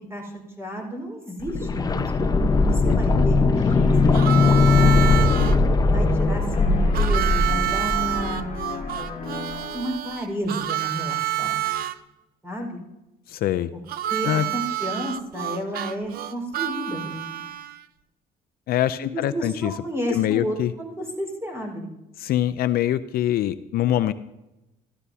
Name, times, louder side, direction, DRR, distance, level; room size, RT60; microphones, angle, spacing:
voice 1, 0.1-2.0 2.6-3.4 3.7-5.2 5.8-8.5 9.7-11.6 12.4-12.8 14.1-17.4 19.0-21.9, equal, 15° right, 1 dB, 4.5 m, -32 dB
sound 1, 1.4-9.2 9.5-9.6, left 3 dB, 25° left, 0.7 m, -20 dB
voice 2, 2.9-3.3 13.3-13.7 14.2-14.5 18.7-19.7 20.1-20.7 22.2-24.1, left 12 dB, 60° left, 12 dB, 0.5 m, -24 dB
sound 2, 3.5-6.3 6.5-10.1, left 6 dB, 45° left, 1.5 m, -38 dB
Harmonica, 4.1-5.6 6.9-11.9 13.9-17.8, right 13 dB, 60° right, 0.6 m, -28 dB
13.5 x 13.5 x 2.8 m, 0.96 s
cardioid pair, 110°, 17 cm